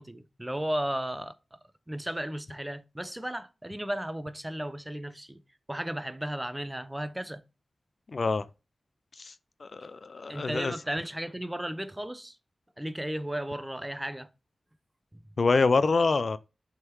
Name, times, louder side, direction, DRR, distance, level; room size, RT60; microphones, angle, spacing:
voice 1, 0.0-1.6 1.9-5.4 5.7-7.4 10.3-12.4 12.8-14.3, right 1 dB, 10° right, 0.6 m, -34 dB
voice 2, 8.1-8.4 9.2-9.3 9.6-10.7 15.4-16.4, left 4 dB, 55° left, 0.4 m, -25 dB
6.3 x 3.7 x 4.5 m
cardioid pair, 65°, 0 cm